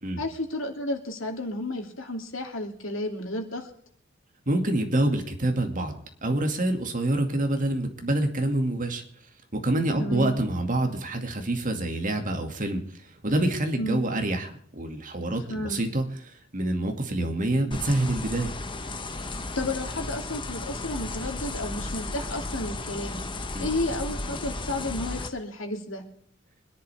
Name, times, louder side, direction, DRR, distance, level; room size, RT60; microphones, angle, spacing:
voice 1, 0.2-3.7 10.0-10.4 13.8-14.0 15.5-15.8 19.5-23.2 23.6-26.0, left 1 dB, 75° left, 3 dB, 2.9 m, -32 dB
voice 2, 4.5-9.0 9.5-18.5 23.5-23.7, right 1 dB, 40° right, 4 dB, 2.4 m, -27 dB
sound 1, 17.7-25.3, left 2 dB, 25° left, 1.3 m, -34 dB
25.0 x 11.0 x 3.6 m, 0.65 s
head